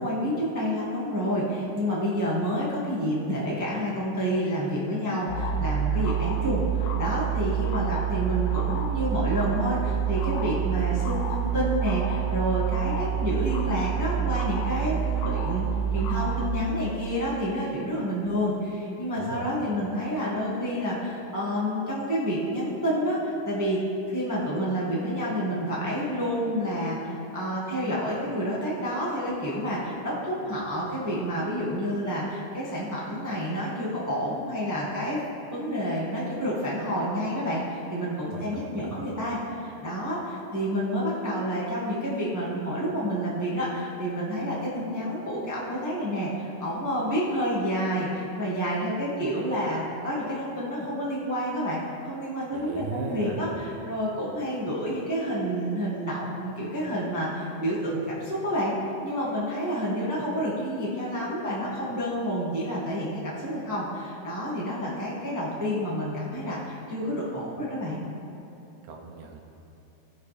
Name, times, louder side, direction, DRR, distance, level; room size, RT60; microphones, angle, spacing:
voice 1, 0.0-15.7 15.9-23.8 24.1-35.2 35.5-58.7 59.0-68.0, equal, 20° right, -6 dB, 0.5 m, -29 dB
sound 1, 5.3-16.5, right 8 dB, 75° left, 2.6 m, -27 dB
voice 2, 19.1-19.6 38.3-39.0 52.5-53.6 68.8-69.4, right 3 dB, 80° right, 2 dB, 2.5 m, -37 dB
19.0 x 6.7 x 3.3 m, 2.9 s
omnidirectional pair, 3.7 m